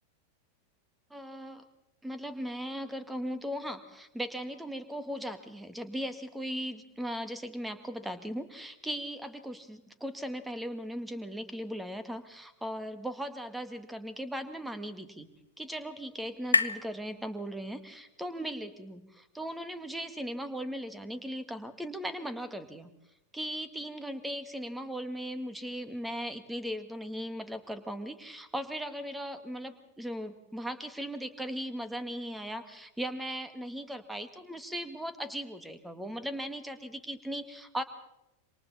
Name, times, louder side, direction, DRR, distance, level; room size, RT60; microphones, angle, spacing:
voice 1, 1.1-1.6 2.0-15.3 15.6-22.9 23.3-37.8, equal, 5° right, 10 dB, 2.0 m, -38 dB
sound 1, 14.2-17.9, left 4 dB, 80° left, 1.2 m, -34 dB
27.5 x 26.0 x 4.3 m, 0.89 s
figure-of-eight pair, 90°, 0 cm